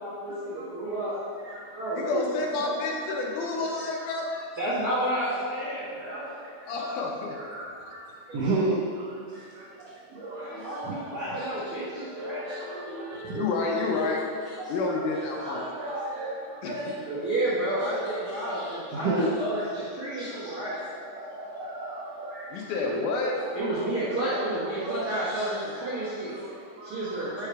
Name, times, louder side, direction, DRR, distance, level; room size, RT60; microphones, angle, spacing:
voice 1, 0.0-1.2 1.7-2.2 2.6-2.7 4.6-6.3 10.3-12.5 17.1-20.8 22.8-23.0 23.5-26.3 26.8-27.5, right 1 dB, 50° right, -10 dB, 1.2 m, -31 dB
voice 2, 1.4-1.8 4.9-5.0 6.0-6.5 6.8-6.9 7.3-11.5 11.9-13.5 14.6-15.1 15.4-17.2 17.7-19.3 19.7-19.8 20.1-22.7 23.4-23.8 24.2-27.5, right 2 dB, 85° right, -4 dB, 1.4 m, -35 dB
voice 3, 2.0-4.5 6.7-7.4 13.3-14.4 14.7-15.6 16.6-16.9 22.5-23.4, left 3 dB, 80° left, 0 dB, 2.1 m, -29 dB
5.6 x 4.8 x 4.6 m, 2.2 s
omnidirectional pair, 3.9 m